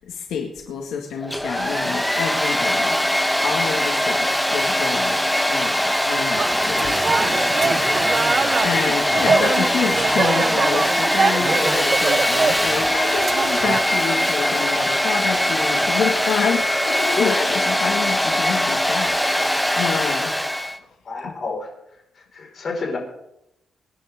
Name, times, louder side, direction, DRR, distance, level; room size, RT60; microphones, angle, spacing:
voice 1, 0.0-5.2 5.5-8.0 8.6-20.4, left 6 dB, 90° left, 1 dB, 2.0 m, -28 dB
Domestic sounds home sounds, 1.2-20.8, equal, 5° left, 0.9 m, -21 dB
sound 1, 6.3-13.8, right 5 dB, 35° right, 0.6 m, -24 dB
voice 2, 21.1-21.7 22.3-23.0, left 4 dB, 45° left, 0 dB, 5.3 m, -27 dB
25.0 x 10.5 x 3.8 m, 0.83 s
cardioid pair, 130°, 0 cm